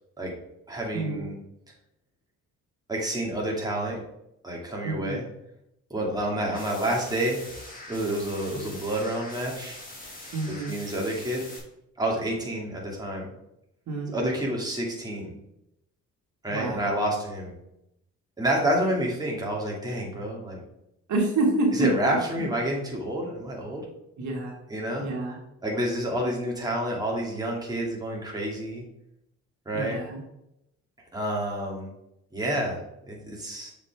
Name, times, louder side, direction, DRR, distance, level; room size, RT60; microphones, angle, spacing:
voice 1, 0.7-1.4 2.9-4.0 4.4-5.2 5.9-7.4 7.9-9.8 10.5-11.4 12.0-13.3 14.1-15.3 16.4-17.5 18.4-20.6 21.7-23.8 24.7-25.0 25.6-28.8 29.7-30.0 31.1-31.9 32.3-32.8 33.1-33.7, right 1 dB, 15° right, -3 dB, 2.3 m, -29 dB
voice 2, 4.8-5.2 8.5-8.7 10.3-10.7 13.9-14.3 16.5-17.0 21.1-22.2 24.2-24.5 25.0-25.4 29.7-30.2, right 2 dB, 70° right, -1 dB, 2.0 m, -28 dB
sound 1, 6.4-11.6, left 1 dB, 30° left, 2.7 m, -43 dB
6.8 x 5.4 x 3.5 m, 0.82 s
cardioid pair, 90°, 30 cm